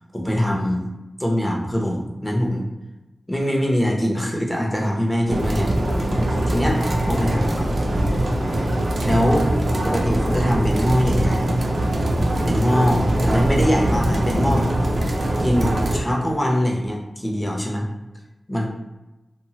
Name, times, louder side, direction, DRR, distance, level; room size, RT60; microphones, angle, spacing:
voice 1, 0.1-0.9 1.2-2.7 3.3-5.7 6.5-6.8 7.1-7.5 8.1-8.2 9.0-9.5 9.8-11.5 12.4-14.7 15.0-15.1 15.4-17.9 18.5-18.7, equal, 10° left, -1 dB, 0.6 m, -22 dB
sound 1, 5.3-16.0, right 1 dB, 60° right, 0.5 m, -22 dB
2.9 x 2.1 x 2.8 m, 1.0 s
wide cardioid pair, 80°, 0 cm